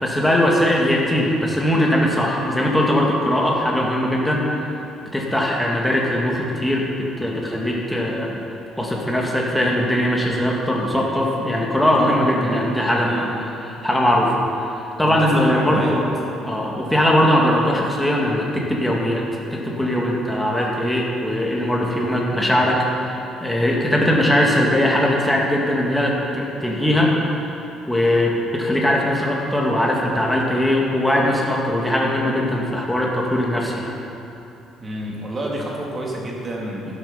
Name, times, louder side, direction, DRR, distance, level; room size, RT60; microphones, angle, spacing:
voice 1, 0.0-4.4 5.1-8.4 8.8-13.3 13.6-16.1 16.4-19.2 19.5-27.4 27.9-33.9 36.9-37.0, left 1 dB, 5° left, -3 dB, 2.0 m, -20 dB
voice 2, 15.0-16.0 34.8-36.9, right 1 dB, 25° right, -3 dB, 2.6 m, -28 dB
12.0 x 12.0 x 5.7 m, 3.0 s
cardioid pair, 145°, 0 cm